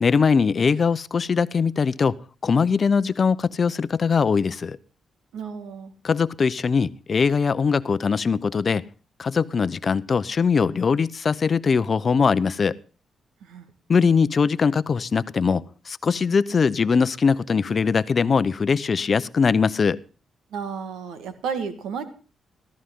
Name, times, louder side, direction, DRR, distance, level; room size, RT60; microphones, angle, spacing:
voice 1, 0.0-2.2 2.4-4.8 6.0-8.8 9.2-12.7 13.9-20.0, left 5 dB, 50° left, 16 dB, 0.7 m, -21 dB
voice 2, 5.3-5.9 13.4-13.7 20.5-22.1, right 6 dB, 90° right, 10 dB, 1.7 m, -32 dB
14.5 x 14.0 x 3.7 m, 0.36 s
cardioid pair, 70°, 0 cm